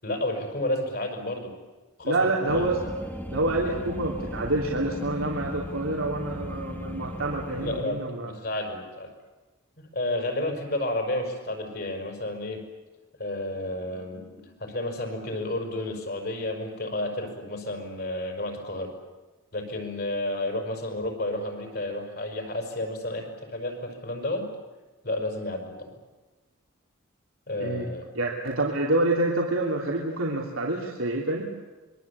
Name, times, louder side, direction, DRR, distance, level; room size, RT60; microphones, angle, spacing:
voice 1, 0.0-1.5 2.0-2.7 7.6-9.1 9.9-12.6 13.2-18.9 19.5-24.5 25.0-26.0 27.5-28.1, left 1 dB, 50° left, 4 dB, 5.7 m, -31 dB
voice 2, 2.0-2.8 3.3-8.3 27.6-27.9 28.1-31.5, right 2 dB, 85° right, -1 dB, 3.1 m, -27 dB
sound 1, 2.5-7.8, left 1 dB, 10° left, 1.3 m, -37 dB
26.0 x 23.0 x 8.6 m, 1.2 s
head